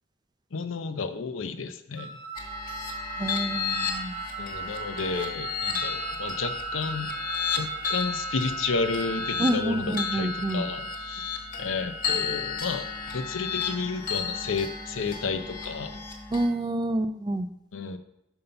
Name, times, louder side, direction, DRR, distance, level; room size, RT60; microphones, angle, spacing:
voice 1, 0.5-2.2 4.4-7.1 7.5-12.9 13.1-16.0 17.7-18.0, left 4 dB, 85° left, 9 dB, 0.6 m, -32 dB
Wind instrument woodwind instrument, 2.0-8.2, right 5 dB, 70° right, 1.5 m, -38 dB
sound 1, 2.4-16.5, left 5 dB, 45° left, 1.4 m, -33 dB
voice 2, 3.2-4.2 9.4-10.7 16.3-17.5, right 1 dB, 20° right, 11 dB, 0.4 m, -28 dB
5.4 x 5.4 x 5.6 m, 0.85 s
head